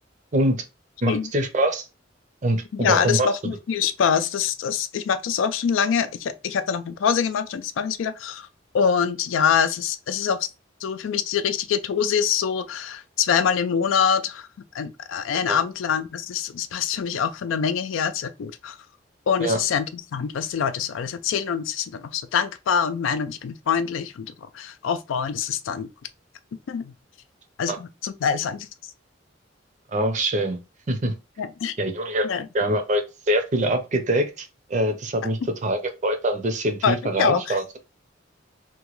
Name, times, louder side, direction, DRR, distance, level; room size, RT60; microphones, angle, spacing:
voice 1, 0.3-0.6 1.0-1.9 2.4-3.3 15.5-15.6 19.4-19.6 27.7-27.8 29.9-30.6 30.9-31.1 31.8-32.3 32.5-37.6, right 1 dB, 40° right, 0.5 m, -24 dB
voice 2, 2.7-8.5 8.7-10.5 10.8-14.5 14.7-18.8 19.3-25.9 26.7-26.9 27.6-28.7 31.4-31.8 32.2-32.5 36.8-37.6, left 7 dB, 85° left, 0.4 m, -25 dB
2.9 x 2.2 x 3.0 m
head